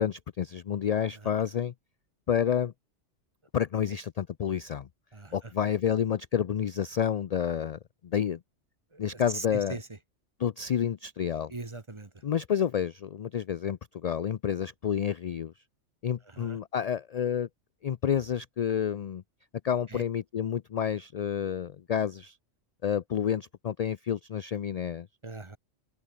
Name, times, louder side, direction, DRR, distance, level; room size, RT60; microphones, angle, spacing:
voice 1, 0.0-1.7 2.3-2.7 3.5-4.9 5.3-8.4 9.0-9.8 10.4-11.5 12.2-15.5 16.0-17.5 17.8-19.2 19.6-22.4 22.8-25.1, left 8 dB, 60° left, 0.4 m, -29 dB
voice 2, 8.9-9.9 11.5-12.1 16.3-16.6 19.9-20.0 25.2-25.6, right 2 dB, 25° right, 1.4 m, -40 dB
open air
omnidirectional pair, 1.2 m